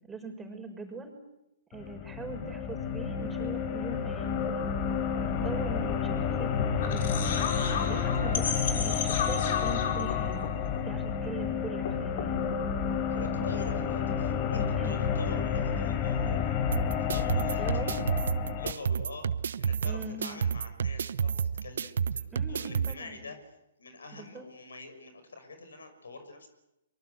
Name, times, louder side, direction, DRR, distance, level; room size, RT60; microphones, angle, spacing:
voice 1, 0.1-1.1 1.7-4.7 5.2-7.3 7.8-10.5 10.8-12.5 14.8-15.0 17.6-18.0 19.8-20.4 22.3-23.2 24.1-24.5, right 3 dB, 10° right, 4 dB, 5.6 m, -41 dB
sound 1, 1.7-18.7, left 7 dB, 35° left, 3.5 m, -30 dB
sound 2, 5.2-11.5 11.7-12.8, left 6 dB, 55° left, 5.9 m, -34 dB
voice 2, 13.1-18.0 18.6-19.3 19.6-23.5 23.8-26.5, left 3 dB, 80° left, 9 dB, 6.2 m, -45 dB
sound 3, 16.7-22.9, right 7 dB, 70° right, 1.0 m, -31 dB
24.5 x 23.5 x 8.1 m, 0.88 s
hypercardioid pair, 125°, 0 cm